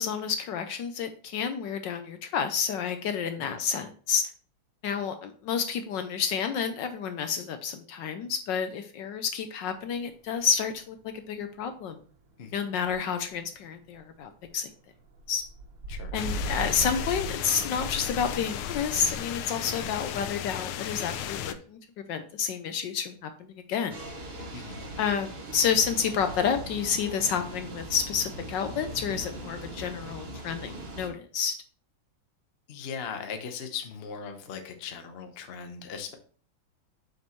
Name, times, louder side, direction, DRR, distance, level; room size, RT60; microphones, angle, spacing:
voice 1, 0.0-4.2 4.8-12.0 12.5-14.7 15.3-15.4 16.1-24.0 25.0-31.5, left 7 dB, 70° left, 8 dB, 1.2 m, -30 dB
sound 1, 10.4-13.4 13.7-14.5 14.9-18.4, right 1 dB, 70° right, 2.1 m, -37 dB
sound 2, 16.1-21.5, left 10 dB, 90° left, 1.5 m, -35 dB
sound 3, 23.9-31.1, right 1 dB, 35° right, 1.1 m, -40 dB
voice 2, 32.7-36.1, left 6 dB, 45° left, 6 dB, 0.8 m, -39 dB
7.8 x 5.3 x 3.0 m, 0.44 s
omnidirectional pair, 2.3 m